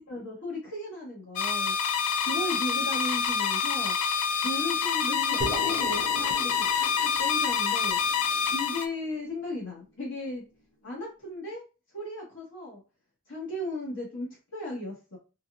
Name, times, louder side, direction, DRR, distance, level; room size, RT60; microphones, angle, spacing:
voice 1, 0.1-1.7 2.2-3.9 4.4-8.0 8.5-10.4 10.8-11.6 11.9-12.8 13.3-15.2, left 1 dB, 60° left, -5 dB, 1.4 m, -36 dB
sound 1, 1.4-8.9, left 6 dB, 80° left, 0.4 m, -27 dB
sound 2, 5.4-9.8, right 1 dB, 35° left, 1.6 m, -39 dB
3.9 x 2.4 x 2.4 m, 0.32 s
head